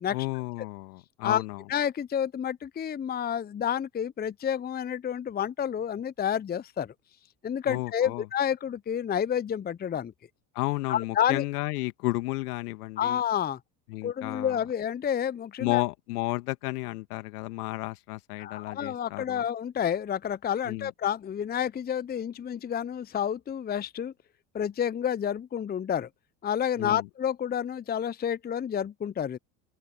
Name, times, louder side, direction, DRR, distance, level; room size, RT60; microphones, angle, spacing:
voice 1, 0.1-1.6 7.6-8.2 10.6-13.2 13.9-14.6 15.6-19.4 20.7-20.9 26.8-27.1, left 21 dB, 65° left, 2.0 m, -32 dB
voice 2, 1.7-6.9 7.4-10.1 10.9-11.4 13.0-13.6 14.0-15.8 18.4-24.1 24.5-26.1 26.4-29.4, left 9 dB, 20° left, 0.8 m, -29 dB
open air
hypercardioid pair, 75°, 48 cm